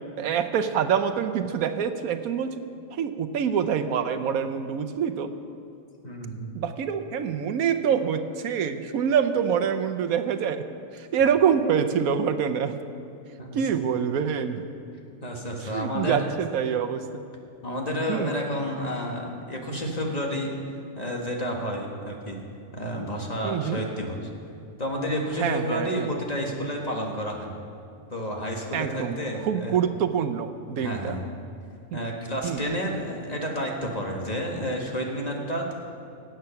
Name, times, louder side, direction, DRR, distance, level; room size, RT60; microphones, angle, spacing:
voice 1, 0.2-2.5 2.9-5.3 6.5-10.7 10.9-12.7 13.5-14.6 15.7-17.2 18.1-18.3 23.4-23.8 25.4-26.1 28.7-29.2 29.4-31.2 32.4-32.7, right 7 dB, 85° right, 9 dB, 1.2 m, -25 dB
voice 2, 6.0-6.5 13.4-13.6 15.2-16.3 17.6-20.5 21.0-22.4 22.7-24.2 24.8-27.5 28.1-29.9 30.8-31.3 31.9-35.7, equal, 30° left, 0 dB, 1.6 m, -30 dB
18.5 x 8.0 x 5.8 m, 2.6 s
omnidirectional pair, 1.5 m